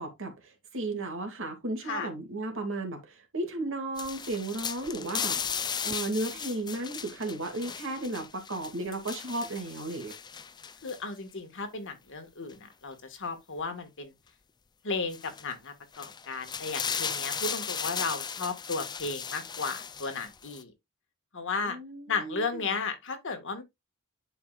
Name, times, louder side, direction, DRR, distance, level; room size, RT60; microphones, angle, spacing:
voice 1, 0.0-5.4 5.8-10.1 21.6-22.8, right 2 dB, 60° right, 2.3 m, -34 dB
sound 1, 4.0-11.0 12.5-12.6 15.1-15.4 15.9-20.6, left 7 dB, 20° left, 0.4 m, -36 dB
voice 2, 10.8-14.1 14.8-20.7 21.3-21.8 22.1-23.6, left 4 dB, 60° left, 1.7 m, -34 dB
11.0 x 4.6 x 2.4 m
head